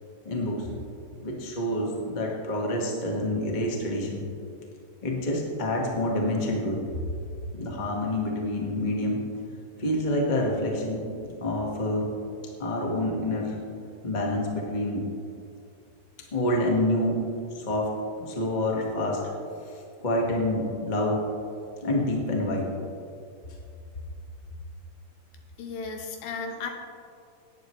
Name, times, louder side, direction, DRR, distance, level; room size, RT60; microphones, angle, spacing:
voice 1, 0.2-0.7 1.2-4.2 5.0-6.8 7.5-9.2 9.8-11.1 11.4-12.1 12.6-13.6 14.0-15.1 16.3-17.2 17.5-17.9 18.2-19.3 19.7-21.2 21.8-22.7, left 1 dB, 30° left, -2 dB, 0.8 m, -27 dB
voice 2, 25.6-26.7, left 4 dB, 85° left, 2 dB, 3.0 m, -34 dB
18.5 x 9.0 x 3.2 m, 2.5 s
omnidirectional pair, 4.0 m